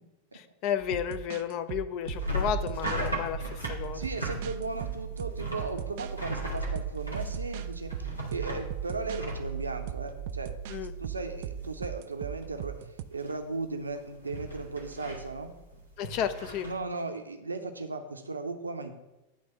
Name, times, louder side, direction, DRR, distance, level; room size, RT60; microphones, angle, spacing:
voice 1, 0.3-4.0 10.7-10.9 16.0-16.7, left 9 dB, 40° left, 11 dB, 0.4 m, -32 dB
sound 1, 0.8-3.1 3.6-6.1 6.8-7.7 7.9-9.2 9.9-13.1, right 12 dB, 50° right, 0.3 m, -39 dB
sound 2, 2.0-12.2 12.4-12.9 13.2-16.7, right 2 dB, 90° left, 1.8 m, -36 dB
voice 2, 3.9-10.5 11.0-15.5 16.6-18.9, right 3 dB, 80° right, 7 dB, 0.7 m, -36 dB
9.4 x 3.4 x 6.7 m, 1.0 s
figure-of-eight pair, 90°, 0 cm